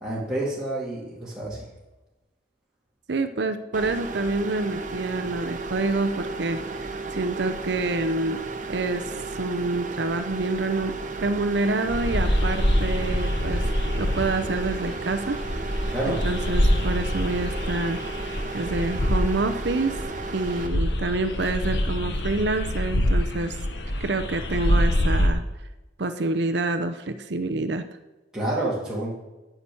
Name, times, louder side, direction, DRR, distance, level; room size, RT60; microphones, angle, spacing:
voice 1, 0.0-1.6 15.9-16.2 28.3-29.1, right 1 dB, 5° right, -8 dB, 2.3 m, -28 dB
voice 2, 3.1-8.4 8.7-10.9 11.2-13.6 14.0-15.4 16.0-18.0 18.5-20.0 20.3-23.6 24.0-25.4 26.0-27.8, right 2 dB, 65° right, 9 dB, 0.7 m, -27 dB
sound 1, 3.7-20.7, right 3 dB, 45° right, 1.0 m, -34 dB
sound 2, 11.9-25.3, left 1 dB, 65° left, 1.2 m, -26 dB
9.7 x 6.0 x 8.5 m, 1.1 s
head